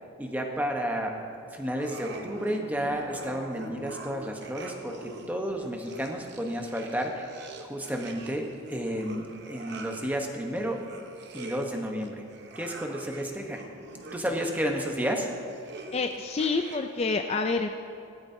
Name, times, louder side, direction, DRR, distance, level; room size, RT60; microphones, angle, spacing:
voice 1, 0.2-1.1 1.5-10.8 11.3-12.2 12.6-13.6 14.1-15.3, equal, 10° right, 2 dB, 1.0 m, -31 dB
sound 1, 1.7-17.1, right 2 dB, 55° right, 0.9 m, -44 dB
voice 2, 15.9-17.7, left 4 dB, 30° left, 6 dB, 0.4 m, -28 dB
16.5 x 13.0 x 2.7 m, 2.4 s
head